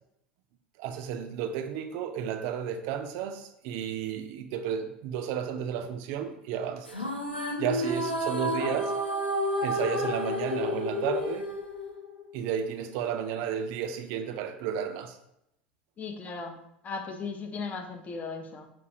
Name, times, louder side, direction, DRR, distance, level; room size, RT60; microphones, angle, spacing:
voice 1, 0.8-7.0 7.6-8.9 9.6-11.5 12.3-15.2, right 8 dB, 50° right, 7 dB, 0.4 m, -32 dB
sound 1, 6.8-12.3, left 1 dB, 90° left, 0.5 m, -30 dB
voice 2, 16.0-16.6 16.8-18.7, left 4 dB, 30° left, 5 dB, 0.5 m, -37 dB
5.8 x 2.2 x 2.7 m, 0.79 s
figure-of-eight pair, 75°, 5 cm